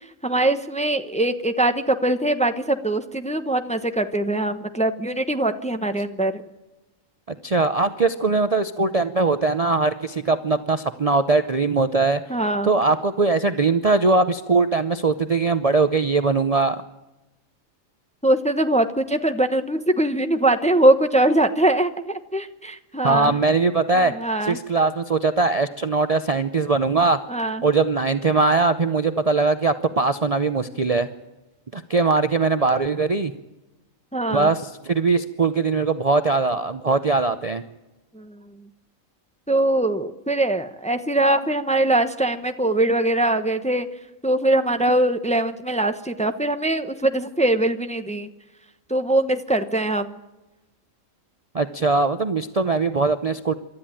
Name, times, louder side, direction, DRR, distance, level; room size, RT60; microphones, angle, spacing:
voice 1, 0.2-6.4 12.3-12.7 18.2-23.3 24.1-24.6 27.3-27.6 34.1-34.5 38.1-38.4 39.5-43.9 44.2-48.3 48.9-50.2, right 1 dB, 5° left, 8 dB, 0.9 m, -22 dB
voice 2, 7.3-12.2 12.6-16.8 23.0-24.1 24.4-27.2 27.6-31.1 31.7-33.3 34.3-37.6 51.5-53.5, right 3 dB, 35° right, 9 dB, 0.7 m, -21 dB
27.0 x 13.0 x 9.0 m, 1.0 s
omnidirectional pair, 1.4 m